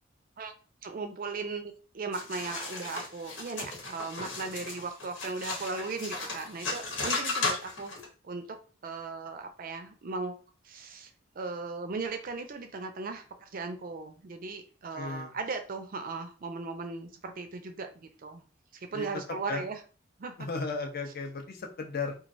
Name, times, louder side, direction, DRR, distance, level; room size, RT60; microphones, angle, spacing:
voice 1, 0.8-7.9 8.2-8.4 8.8-10.3 10.6-11.1 11.4-18.4 18.7-19.8 20.2-20.5, right 4 dB, 45° right, 7 dB, 0.4 m, -37 dB
sound 1, 2.1-8.0, left 3 dB, 80° left, 1.2 m, -35 dB
voice 2, 14.9-15.3 18.9-19.1 19.5-19.6 20.4-22.2, left 4 dB, 50° left, 4 dB, 0.6 m, -35 dB
3.1 x 2.4 x 2.5 m, 0.37 s
head